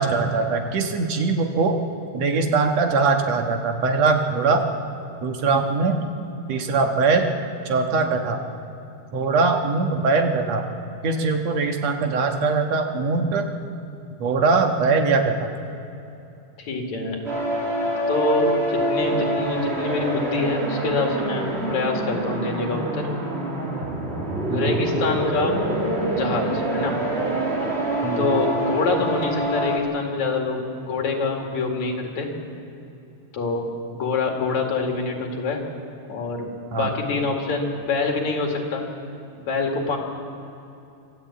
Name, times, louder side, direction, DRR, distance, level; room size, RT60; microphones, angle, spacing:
voice 1, 0.0-1.8 2.1-4.6 5.2-6.0 6.5-7.2 7.7-8.4 9.1-10.6 11.0-13.5 14.2-15.4 24.5-24.8 28.0-28.3 36.7-36.9, right 4 dB, 65° right, 4 dB, 2.5 m, -21 dB
voice 2, 16.7-17.2 18.1-23.0 24.5-25.6 26.1-27.0 28.2-32.3 33.3-33.7 33.9-35.6 36.1-38.8 39.5-40.0, left 3 dB, 75° left, 1 dB, 3.5 m, -25 dB
sound 1, 17.2-29.8, right 1 dB, 25° right, 2.2 m, -26 dB
25.0 x 12.5 x 8.5 m, 2.8 s
omnidirectional pair, 3.3 m